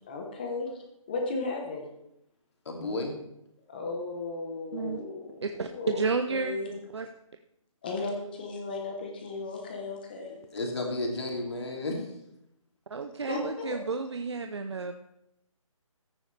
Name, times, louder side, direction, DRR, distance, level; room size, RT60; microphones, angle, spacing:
voice 1, 0.1-0.8 1.1-1.9 3.7-5.4 5.7-6.0 6.3-6.8 7.8-10.4 13.3-13.7, left 3 dB, 15° left, 2 dB, 1.0 m, -35 dB
voice 2, 2.7-3.1 10.3-12.0, left 2 dB, 50° left, 0 dB, 2.9 m, -32 dB
voice 3, 4.7-5.0 5.4-6.6 6.9-7.1 12.9-14.9, right 4 dB, 50° right, 7 dB, 0.6 m, -31 dB
14.5 x 9.2 x 3.4 m, 0.81 s
hypercardioid pair, 175°, 18 cm